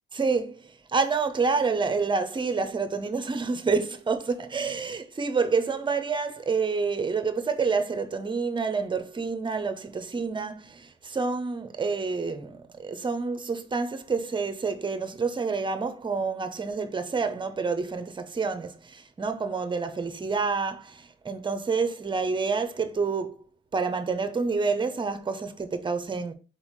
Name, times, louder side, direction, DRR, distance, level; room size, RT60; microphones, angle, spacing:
voice 1, 0.1-23.4 23.7-26.3, right 4 dB, 25° right, 0.7 m, -28 dB
4.0 x 4.0 x 3.1 m
cardioid pair, 90°, 20 cm